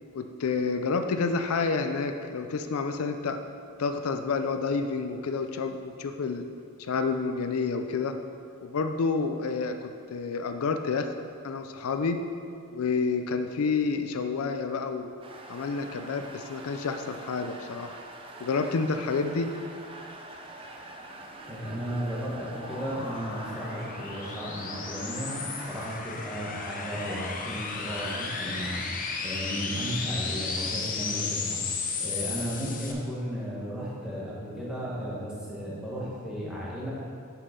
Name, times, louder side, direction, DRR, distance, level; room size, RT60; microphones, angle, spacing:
voice 1, 0.1-3.4 3.8-6.4 6.8-8.1 8.6-11.1 11.4-12.2 12.7-15.1 15.5-17.9 18.4-19.5, left 4 dB, 75° left, 7 dB, 0.4 m, -29 dB
sound 1, 15.2-26.0, right 2 dB, 25° right, 0.6 m, -45 dB
sound 2, 21.1-32.9, left 4 dB, 40° left, 0.7 m, -35 dB
voice 2, 21.5-28.8 29.2-31.6 32.0-36.9, equal, 5° right, -7 dB, 1.5 m, -34 dB
7.0 x 5.5 x 5.2 m, 2.4 s
head